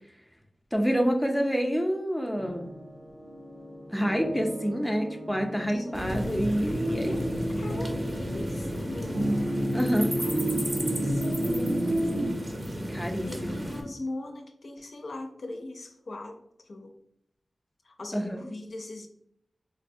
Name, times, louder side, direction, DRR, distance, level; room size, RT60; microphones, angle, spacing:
voice 1, 0.7-2.7 3.9-7.3 9.7-10.1 12.9-13.6 18.1-18.4, equal, ahead, 3 dB, 0.4 m, -27 dB
sound 1, 2.4-12.3, right 1 dB, 85° right, 0.8 m, -32 dB
voice 2, 5.7-6.3 7.0-7.2 7.6-9.4 10.2-11.9 13.2-16.9 17.8-19.1, left 2 dB, 65° left, 3 dB, 0.4 m, -40 dB
sound 2, 5.9-13.8, equal, 40° right, 0.7 m, -33 dB
4.0 x 2.1 x 2.6 m, 0.74 s
wide cardioid pair, 95°, 0 cm